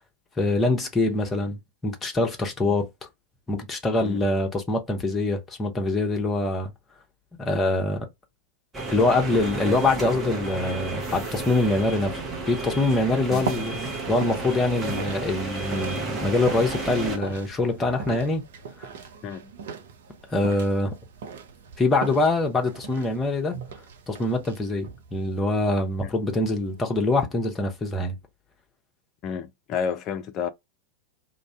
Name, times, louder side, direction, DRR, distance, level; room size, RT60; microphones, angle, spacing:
voice 1, 0.4-2.9 3.5-6.7 7.4-8.1 8.9-12.1 12.5-18.4 20.3-20.9 21.8-23.5 24.1-28.2, left 2 dB, 15° left, 0.9 m, -24 dB
sound 1, 8.7-17.2, right 3 dB, 15° right, 0.9 m, -32 dB
sound 2, 13.2-27.1, right 5 dB, 60° right, 0.5 m, -39 dB
voice 2, 29.2-30.5, left 7 dB, 35° left, 0.4 m, -31 dB
2.5 x 2.1 x 3.4 m
figure-of-eight pair, 90°, 0 cm